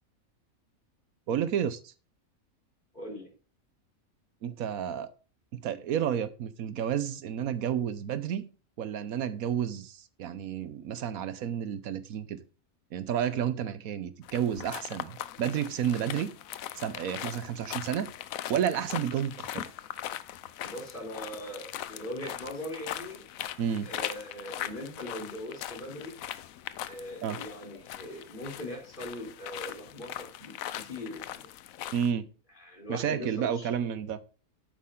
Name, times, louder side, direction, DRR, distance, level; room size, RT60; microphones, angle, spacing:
voice 1, 1.3-1.9 4.4-5.1 5.5-8.5 8.8-12.4 12.9-16.3 16.8-18.1 18.5-19.6 23.6-23.9 27.2-27.4 31.9-32.3 32.9-34.2, right 9 dB, 80° right, 1.2 m, -31 dB
voice 2, 2.9-3.3 20.6-23.3 23.8-26.1 26.9-31.5 32.6-33.7, left 1 dB, 35° left, 4.0 m, -40 dB
sound 1, 14.2-32.1, left 12 dB, 75° left, 1.0 m, -40 dB
10.5 x 8.6 x 3.8 m
omnidirectional pair, 1.5 m